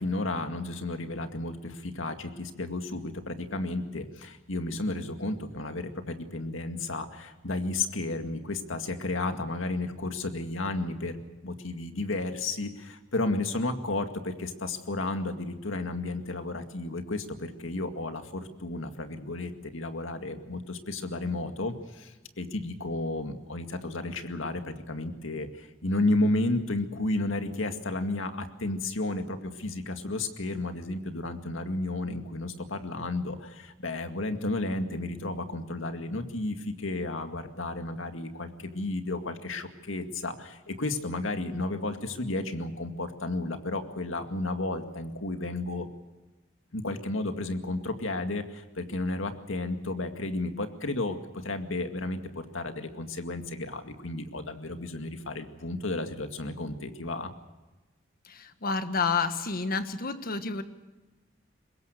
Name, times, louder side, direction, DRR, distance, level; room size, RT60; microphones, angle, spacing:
voice 1, 0.0-45.9 46.7-51.2 51.4-57.3, left 2 dB, 80° left, 7 dB, 2.1 m, -32 dB
voice 2, 58.2-60.6, left 4 dB, 50° left, 9 dB, 1.5 m, -29 dB
24.0 x 21.0 x 6.6 m, 1.1 s
head